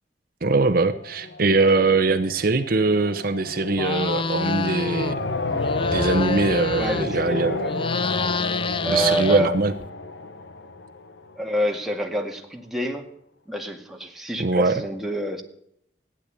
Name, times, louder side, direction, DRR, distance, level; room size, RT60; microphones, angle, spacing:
voice 1, 0.4-5.3 5.9-7.6 8.9-9.7 14.4-14.7, right 3 dB, 55° right, 9 dB, 0.9 m, -22 dB
sound 1, 0.7-11.5, left 2 dB, 85° left, 1.2 m, -31 dB
sound 2, 3.7-5.2 5.5-7.3 7.6-9.8, left 4 dB, 30° left, 0.5 m, -28 dB
voice 2, 6.8-7.7 8.8-9.6 11.4-13.1 13.5-15.4, right 1 dB, ahead, 1 dB, 2.1 m, -27 dB
15.5 x 9.8 x 8.5 m, 0.73 s
head